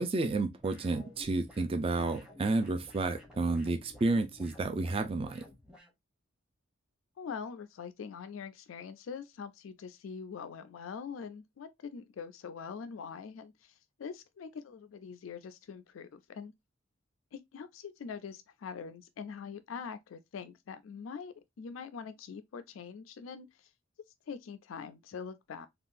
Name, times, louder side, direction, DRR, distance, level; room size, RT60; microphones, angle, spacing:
voice 1, 0.0-5.4, right 2 dB, 30° right, 0.4 m, -31 dB
sound 1, 0.6-5.9, left 1 dB, 5° right, 0.8 m, -54 dB
voice 2, 7.2-16.5 17.3-23.7 24.3-25.7, left 6 dB, 90° left, 0.4 m, -43 dB
3.6 x 2.4 x 2.5 m
head